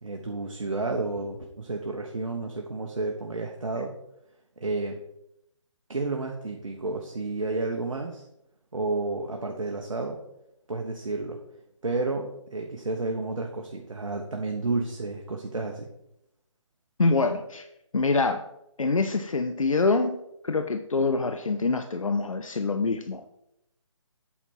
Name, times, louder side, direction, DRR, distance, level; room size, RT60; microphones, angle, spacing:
voice 1, 0.0-3.9 4.6-5.0 5.9-8.2 8.7-10.2 10.7-11.4 11.8-15.9, right 3 dB, 80° right, 2 dB, 1.1 m, -31 dB
voice 2, 17.0-17.7 17.9-18.5 18.8-20.2 20.4-23.2, left 3 dB, 85° left, 8 dB, 0.7 m, -25 dB
8.6 x 4.4 x 5.4 m, 0.82 s
figure-of-eight pair, 145°, 17 cm